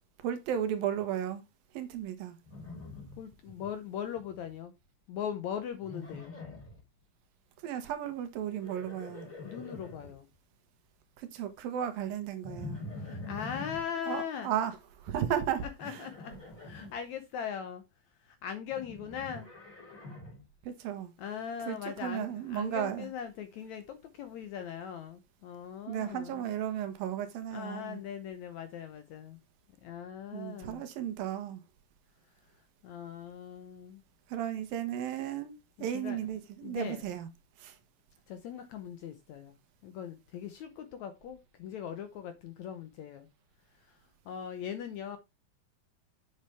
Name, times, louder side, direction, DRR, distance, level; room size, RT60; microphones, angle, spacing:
voice 1, 0.2-1.4 1.7-2.4 7.6-9.3 11.2-12.8 14.1-16.1 20.6-21.1 21.7-23.1 25.9-28.0 30.3-31.6 34.3-35.5 35.8-37.3 37.6-37.8, right 10 dB, 75° right, 2.9 m, -34 dB
Livestock farm animals working animals, 2.4-3.7 4.0-4.5 5.8-6.8 8.4-10.1 12.4-13.8 15.8-16.9 18.7-20.4, left 2 dB, 20° left, 4.9 m, -44 dB
voice 2, 3.2-4.7 5.1-6.4 9.4-10.3 12.9-14.5 15.8-16.3 16.6-17.8 18.2-19.5 21.2-26.4 27.5-29.4 29.8-30.9 32.8-34.0 35.9-36.2 36.6-37.0 38.3-39.6 39.8-43.3 43.8-44.0 44.3-45.2, left 8 dB, 70° left, 1.8 m, -40 dB
7.7 x 7.2 x 3.4 m
omnidirectional pair, 4.2 m